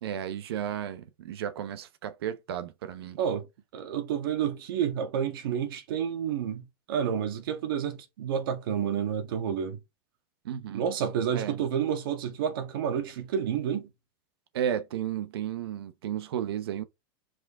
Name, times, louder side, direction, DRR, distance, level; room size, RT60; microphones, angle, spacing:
voice 1, 0.0-3.2 10.4-10.8 11.3-11.6 14.5-16.8, right 9 dB, 85° right, 0.9 m, -33 dB
voice 2, 3.7-9.8 10.7-13.9, right 8 dB, 65° right, 1.7 m, -30 dB
6.4 x 4.9 x 3.7 m
supercardioid pair, 170°, 13 cm